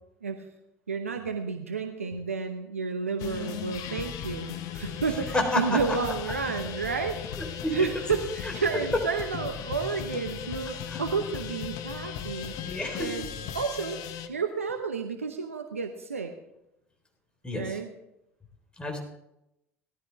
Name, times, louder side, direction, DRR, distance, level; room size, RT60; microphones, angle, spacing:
voice 1, 0.9-7.2 7.7-12.6 13.0-13.3 13.5-14.0 14.3-16.3 17.5-17.9, right 5 dB, 90° right, 7 dB, 0.8 m, -31 dB
Sustain Guitar Jam no pick, 3.2-14.3, left 9 dB, 55° left, 1.1 m, -37 dB
voice 2, 5.3-5.8 7.6-7.8 10.9-11.0 12.6-13.1 17.4-17.8 18.8-19.0, left 1 dB, 15° left, 1 dB, 4.0 m, -29 dB
17.5 x 13.0 x 3.5 m, 0.85 s
figure-of-eight pair, 60°, 7 cm